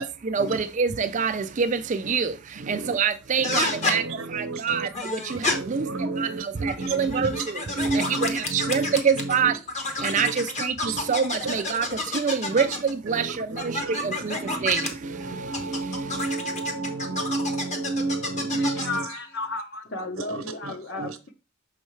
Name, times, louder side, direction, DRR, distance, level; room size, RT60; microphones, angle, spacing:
voice 1, 0.0-16.3, right 6 dB, 35° right, 0.4 m, -27 dB
sound 1, 3.4-4.0 4.9-5.5 6.6-9.3 9.7-12.9 13.6-14.9 15.5-19.0, left 2 dB, 35° left, 1.0 m, -29 dB
voice 2, 3.9-4.9 5.9-7.4 7.8-8.9 9.2-9.5 10.2-10.3 13.1-13.3 13.7-14.7 15.2-18.8 21.0-21.1, right 3 dB, 75° right, 0.8 m, -30 dB
voice 3, 18.5-21.1, left 3 dB, 55° left, 1.1 m, -33 dB
6.4 x 5.4 x 3.2 m
head